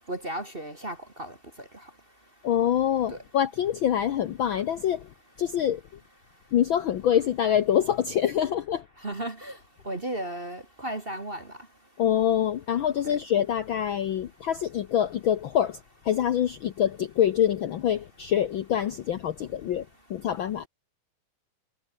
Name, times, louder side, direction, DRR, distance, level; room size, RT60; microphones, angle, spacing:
voice 1, 0.1-1.3 3.1-3.2 9.0-9.6 9.8-11.4 13.0-13.2, right 1 dB, 25° right, 1.4 m, -34 dB
voice 2, 2.4-5.0 5.4-5.8 6.5-8.8 12.0-15.8 16.0-19.8 20.1-20.7, left 10 dB, 85° left, 1.0 m, -25 dB
omnidirectional pair, 3.6 m